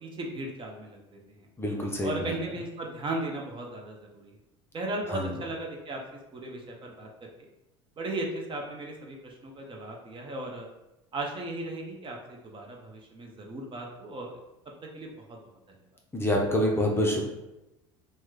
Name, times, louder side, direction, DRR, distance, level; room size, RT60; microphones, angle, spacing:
voice 1, 0.0-1.5 2.0-4.3 4.7-6.0 6.3-7.1 8.0-10.7 11.1-14.3 14.9-15.4, right 2 dB, 35° right, 0 dB, 0.7 m, -36 dB
voice 2, 1.6-2.3 5.1-5.3 16.1-17.2, equal, 15° left, -1 dB, 0.6 m, -26 dB
3.0 x 2.2 x 3.6 m, 0.95 s
hypercardioid pair, 80°, 15 cm